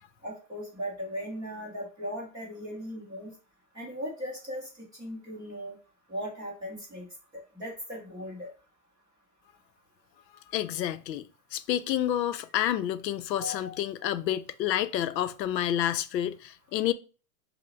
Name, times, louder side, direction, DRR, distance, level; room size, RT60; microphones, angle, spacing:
voice 1, 0.2-3.3 3.7-4.7 5.0-5.7 6.1-7.1 7.3-8.5 13.4-13.8, equal, 10° right, 0.6 m, -38 dB
voice 2, 10.5-11.2 11.5-16.9, left 11 dB, 90° left, 0.6 m, -29 dB
5.4 x 2.1 x 3.8 m
hypercardioid pair, 165°, 49 cm